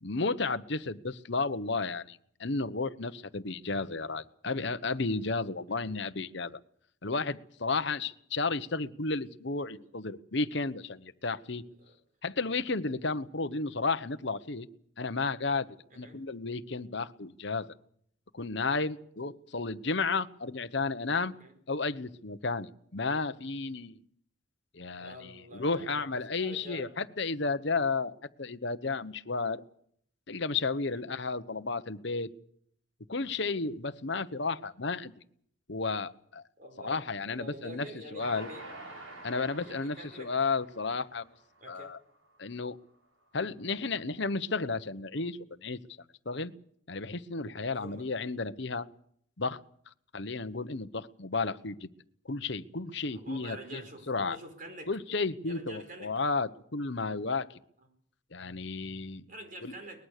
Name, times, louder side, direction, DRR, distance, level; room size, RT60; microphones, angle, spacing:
voice 1, 0.0-6.6 7.0-11.6 12.2-14.7 15.0-15.7 16.0-17.7 18.3-21.3 21.7-24.0 24.7-28.1 28.4-29.6 30.3-32.3 33.1-35.1 35.7-36.4 36.8-37.9 38.1-38.5 39.2-41.3 41.7-42.0 42.4-42.8 43.3-45.8 46.2-46.5 46.9-48.9 49.4-49.6 50.1-51.9 52.3-53.8 54.1-54.4 54.9-57.5 58.3-59.2 59.6-59.7, left 3 dB, 55° left, 11 dB, 1.0 m, -33 dB
voice 2, 15.9-16.2 21.3-21.5 25.0-26.1 26.3-26.9 30.9-31.0 36.6-38.7 39.6-40.4 41.6-42.0 47.7-48.1 53.0-54.9 55.5-56.2 59.3-60.1, right 1 dB, 40° right, 6 dB, 4.6 m, -47 dB
Train, 38.2-41.6 42.2-42.3 42.5-42.6, right 1 dB, 80° right, 6.3 m, -48 dB
22.5 x 20.5 x 6.6 m, 0.66 s
head